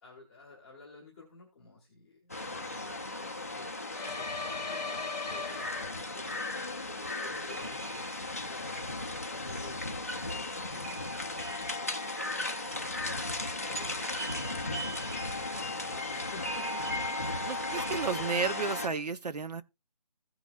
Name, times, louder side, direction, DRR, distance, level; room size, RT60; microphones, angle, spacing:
voice 1, 0.0-8.9 9.3-9.8 10.3-13.3 13.6-17.5, left 3 dB, ahead, 0.9 m, -53 dB
sound 1, 2.3-18.9, left 2 dB, 20° left, 0.5 m, -36 dB
sound 2, 3.9-6.3, left 4 dB, 90° left, 0.8 m, -38 dB
voice 2, 17.4-19.6, right 5 dB, 75° right, 0.9 m, -32 dB
16.0 x 6.0 x 2.5 m
hypercardioid pair, 175°, 21 cm